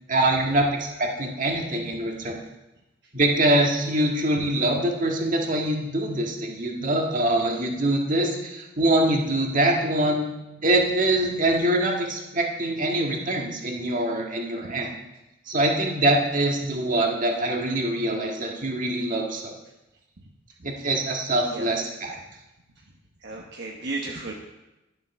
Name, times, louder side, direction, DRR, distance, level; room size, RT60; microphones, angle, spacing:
voice 1, 0.1-2.4 3.1-10.3 10.6-14.9 15.5-19.5 20.6-22.2, right 1 dB, 40° right, 1 dB, 1.7 m, -24 dB
voice 2, 23.2-24.3, right 2 dB, 60° right, 0 dB, 1.2 m, -33 dB
11.5 x 7.6 x 5.9 m, 0.97 s
head